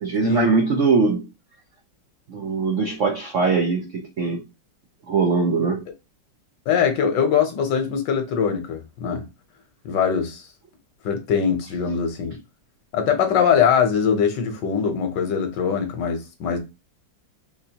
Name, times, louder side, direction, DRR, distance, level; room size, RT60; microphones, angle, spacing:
voice 1, 0.0-1.3 2.3-4.4 5.1-5.8, right 4 dB, 75° right, 0.7 m, -21 dB
voice 2, 6.7-9.3 9.8-10.4 11.0-12.4 12.9-16.6, left 7 dB, 70° left, 1.4 m, -22 dB
4.0 x 2.6 x 2.8 m
omnidirectional pair, 2.1 m